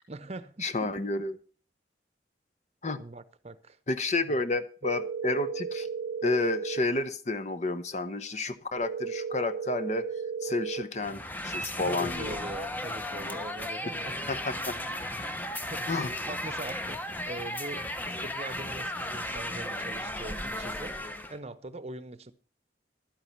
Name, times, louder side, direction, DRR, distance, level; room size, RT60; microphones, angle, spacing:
voice 1, 0.1-0.9 3.0-4.4 11.9-14.3 15.1-15.4 15.7-15.9 16.3-21.0 21.3-22.3, right 2 dB, 35° right, 0.8 m, -42 dB
voice 2, 0.6-1.4 2.8-3.0 3.9-5.9 6.2-10.1 10.4-12.4 14.3-14.7 15.9-16.1, left 2 dB, 40° left, 0.9 m, -30 dB
sound 1, 4.8-6.8 8.8-10.8, right 6 dB, 80° right, 0.5 m, -34 dB
sound 2, 11.0-21.4, left 1 dB, 10° left, 0.9 m, -35 dB
12.0 x 9.7 x 5.6 m
head